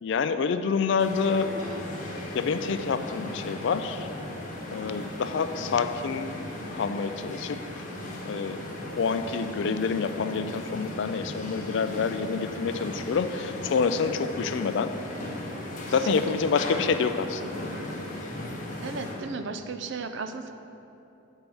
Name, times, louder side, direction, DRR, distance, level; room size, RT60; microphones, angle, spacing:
voice 1, 0.0-1.5 2.3-4.1 4.7-6.3 6.7-7.8 8.2-8.6 9.0-14.9 15.9-17.6 17.9-18.1, left 5 dB, 55° left, 10 dB, 0.3 m, -27 dB
sound 1, 1.0-19.2, left 1 dB, 35° left, 1.1 m, -37 dB
voice 2, 15.9-16.2 18.8-20.5, right 4 dB, 55° right, 8 dB, 0.4 m, -35 dB
9.4 x 4.5 x 5.4 m, 2.9 s
head